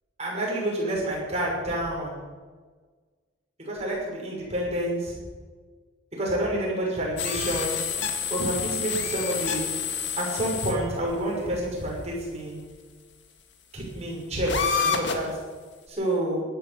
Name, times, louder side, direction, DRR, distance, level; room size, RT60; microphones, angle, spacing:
voice 1, 0.2-2.1 3.6-5.2 6.1-7.8 8.3-9.6 10.2-12.6 13.7-15.3 15.9-16.4, right 1 dB, 30° right, -3 dB, 6.2 m, -28 dB
sound 1, 7.2-10.7 11.1-11.2 12.1-12.2 14.5-15.3, left 6 dB, 60° left, 1.9 m, -28 dB
15.5 x 12.0 x 7.6 m, 1.5 s
head